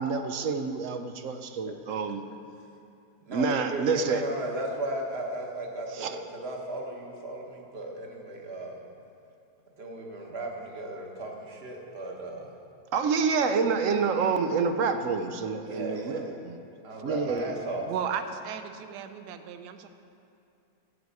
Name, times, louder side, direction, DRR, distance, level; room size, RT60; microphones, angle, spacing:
voice 1, 0.0-2.2 3.3-4.2 5.9-6.2 12.9-16.6 17.0-17.5, right 5 dB, 65° right, 8 dB, 0.9 m, -28 dB
voice 2, 3.3-8.8 9.8-12.5 15.7-16.3 16.8-17.9, right 1 dB, 40° right, 0 dB, 1.5 m, -35 dB
voice 3, 17.8-19.9, right 8 dB, 80° right, 9 dB, 1.2 m, -35 dB
14.0 x 4.8 x 8.2 m, 2.6 s
omnidirectional pair, 1.8 m